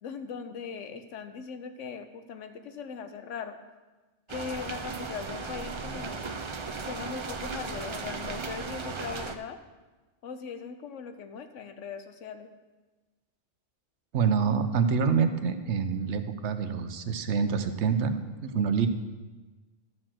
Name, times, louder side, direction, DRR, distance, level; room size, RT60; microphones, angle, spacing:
voice 1, 0.0-3.6 4.3-6.2 6.9-9.6 10.2-12.5, left 6 dB, 85° left, 8 dB, 1.1 m, -39 dB
sound 1, 4.3-9.3, right 4 dB, 45° right, 0.4 m, -36 dB
voice 2, 14.1-18.9, right 6 dB, 75° right, 9 dB, 1.0 m, -26 dB
12.0 x 4.5 x 7.4 m, 1.2 s
omnidirectional pair, 1.2 m